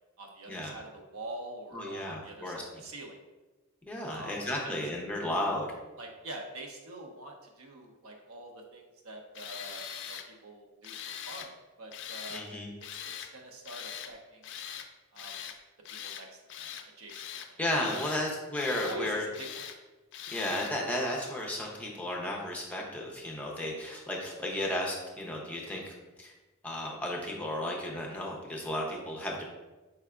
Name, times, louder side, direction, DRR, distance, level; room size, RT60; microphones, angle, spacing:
voice 1, 0.2-3.2 4.0-4.4 4.6-4.7 6.0-11.5 11.8-12.4 13.2-14.4 15.1-15.4 15.9-16.7 17.0-17.6 17.9-18.1 18.8-19.6, right 2 dB, 70° right, 2 dB, 0.6 m, -45 dB
voice 2, 1.7-2.6 3.8-5.7 12.3-12.7 17.6-19.2 20.3-25.9 26.2-26.3 26.6-29.4, left 1 dB, 5° left, -2 dB, 0.6 m, -34 dB
Tools, 9.3-10.3 10.8-11.5 11.9-12.4 12.8-13.3 13.6-14.1 14.4-14.9 15.2-15.6 15.9-16.2 16.5-17.5 17.8-18.2 18.5-19.0 19.3-19.8 20.1-20.7, left 9 dB, 60° left, 0.3 m, -42 dB
4.7 x 3.3 x 2.3 m, 1.1 s
head